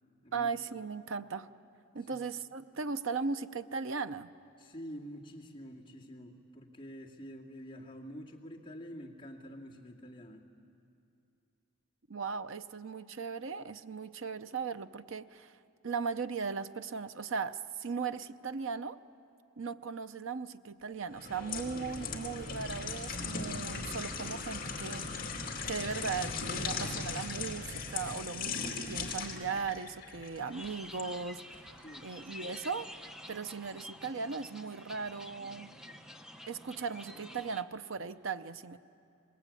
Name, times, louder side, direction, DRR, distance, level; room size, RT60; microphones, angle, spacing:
voice 1, 0.3-1.5 1.9-4.3 12.1-15.6 15.8-19.0 19.6-25.3 25.7-32.9 33.3-35.7 36.5-38.8, right 5 dB, 65° right, 11 dB, 0.7 m, -38 dB
voice 2, 4.6-10.4 31.8-32.1 35.4-35.6 35.9-36.0, equal, 25° left, -3 dB, 2.2 m, -47 dB
sound 1, 21.1-31.1 31.5-31.7, left 4 dB, 40° left, 2.5 m, -38 dB
sound 2, 30.5-37.6, equal, 5° right, 0.7 m, -49 dB
26.0 x 21.0 x 8.5 m, 2.7 s
head